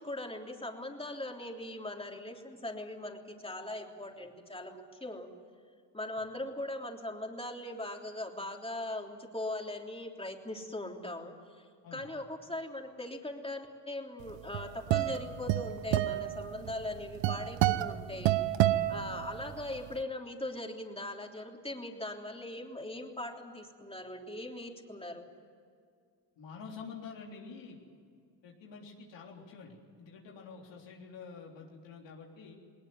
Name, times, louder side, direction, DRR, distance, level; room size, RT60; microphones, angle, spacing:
voice 1, 0.0-5.3 5.9-25.3, left 1 dB, 15° left, 2 dB, 3.3 m, -40 dB
sound 1, 14.3-19.7, right 14 dB, 85° right, 0.8 m, -30 dB
voice 2, 26.4-27.8 28.4-32.6, left 5 dB, 85° left, -1 dB, 3.7 m, -48 dB
19.5 x 19.5 x 9.5 m, 2.2 s
cardioid pair, 75°, 43 cm